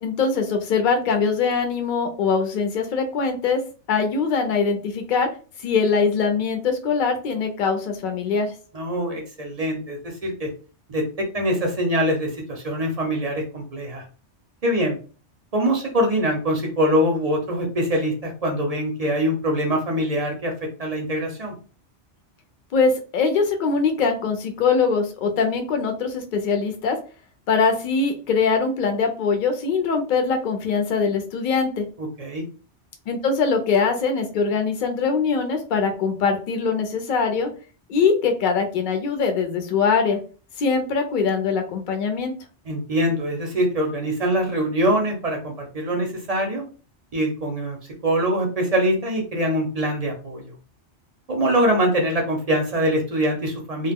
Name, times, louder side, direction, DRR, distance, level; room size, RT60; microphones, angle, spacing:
voice 1, 0.0-3.6 3.9-5.3 5.6-8.5 22.7-27.0 27.5-31.8 33.1-37.5 37.9-40.2 40.6-42.3, left 5 dB, 55° left, 5 dB, 0.6 m, -22 dB
voice 2, 8.7-10.5 10.9-14.0 14.6-15.0 15.5-21.6 32.0-32.4 42.7-46.6 47.1-47.8 48.0-50.5 51.3-53.9, equal, 45° right, 1 dB, 0.5 m, -23 dB
2.2 x 2.1 x 3.4 m, 0.37 s
omnidirectional pair, 1.2 m